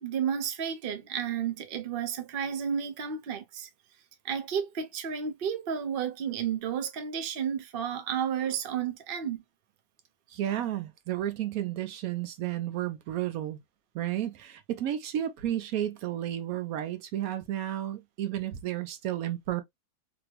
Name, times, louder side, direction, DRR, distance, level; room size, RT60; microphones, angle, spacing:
voice 1, 0.0-3.7 4.2-9.4, right 8 dB, 55° right, 0.6 m, -32 dB
voice 2, 10.3-13.6 13.9-19.6, right 12 dB, 75° right, 1.0 m, -32 dB
2.9 x 2.6 x 2.8 m
omnidirectional pair, 1.6 m